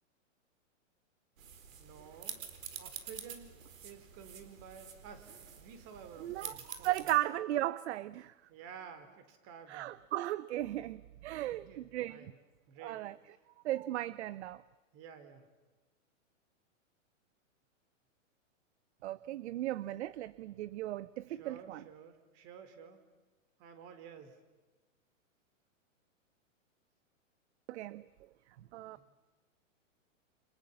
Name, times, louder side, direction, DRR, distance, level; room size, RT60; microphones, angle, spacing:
sound 1, 1.4-7.2, right 7 dB, 80° right, 4.4 m, -48 dB
voice 1, 1.8-2.4 2.8-3.6 3.8-7.1 8.5-10.0 11.4-12.4 12.7-13.0 14.9-15.5 21.3-23.0 23.6-24.4 29.0-29.1, right 7 dB, 35° right, 4.8 m, -52 dB
voice 2, 6.2-8.3 9.7-12.3 12.8-13.2 13.6-14.6 19.0-21.8 27.7-28.0 28.7-29.0, right 15 dB, 55° right, 0.9 m, -36 dB
30.0 x 27.5 x 7.2 m
hypercardioid pair, 135°, 39 cm